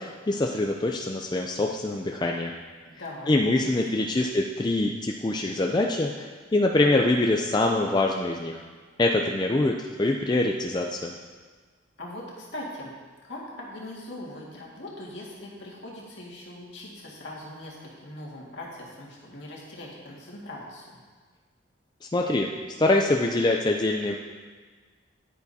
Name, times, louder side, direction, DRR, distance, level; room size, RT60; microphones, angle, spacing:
voice 1, 0.0-2.5 3.3-8.6 9.0-11.1 22.1-22.5 22.8-24.1, left 2 dB, 20° left, 1 dB, 0.4 m, -24 dB
voice 2, 2.9-3.3 3.6-4.1 12.0-12.9 13.2-21.0, left 1 dB, 70° left, -4 dB, 2.0 m, -41 dB
10.5 x 8.5 x 2.8 m, 1.5 s
head